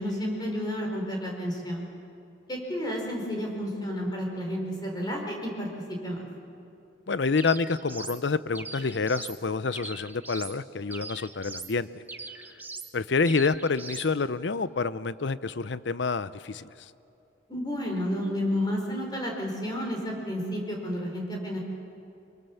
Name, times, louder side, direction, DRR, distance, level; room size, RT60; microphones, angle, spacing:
voice 1, 0.0-1.8 2.5-5.7 6.0-6.2 17.5-21.6, equal, 20° left, 0 dB, 4.2 m, -31 dB
voice 2, 7.1-12.0 12.9-16.7, left 4 dB, 65° left, 16 dB, 0.6 m, -28 dB
sound 1, 7.4-8.2 8.5-9.4 9.7-10.6 10.9-11.7 12.1-12.9 13.3-14.1, right 3 dB, 10° right, 0.8 m, -41 dB
24.5 x 23.5 x 7.1 m, 2.6 s
head